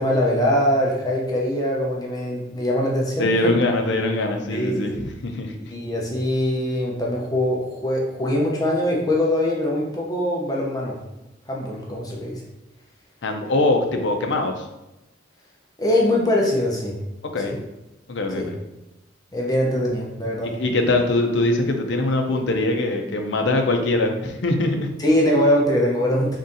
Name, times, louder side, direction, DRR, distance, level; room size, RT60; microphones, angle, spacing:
voice 1, 0.0-3.3 4.5-4.9 5.7-11.0 11.5-12.4 15.8-17.0 17.4-17.6 18.4-18.5 19.3-20.5 25.0-26.4, left 1 dB, 20° left, -3 dB, 0.6 m, -22 dB
voice 2, 3.2-4.9 5.2-5.5 13.2-14.7 17.3-17.6 18.1-18.6 20.4-24.9, left 2 dB, 65° left, 3 dB, 0.6 m, -22 dB
4.1 x 3.6 x 2.6 m, 0.96 s
head